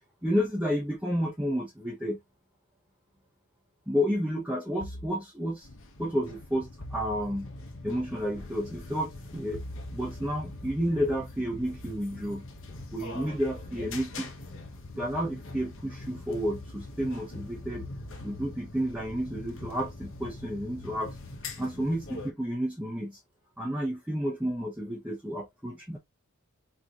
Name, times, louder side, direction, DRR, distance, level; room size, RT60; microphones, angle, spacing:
voice 1, 0.2-2.2 3.9-5.7 6.0-7.5 7.8-9.6 9.9-12.4 12.9-14.3 15.0-17.8 18.2-21.2 21.6-23.2 23.6-26.0, equal, 5° right, 1.0 m, -31 dB
sound 1, 4.8-5.2 6.8-7.7 9.5-20.9, equal, 75° left, 1.4 m, -48 dB
sound 2, 5.6-22.3, left 2 dB, 60° left, 1.3 m, -43 dB
4.6 x 4.3 x 2.5 m
head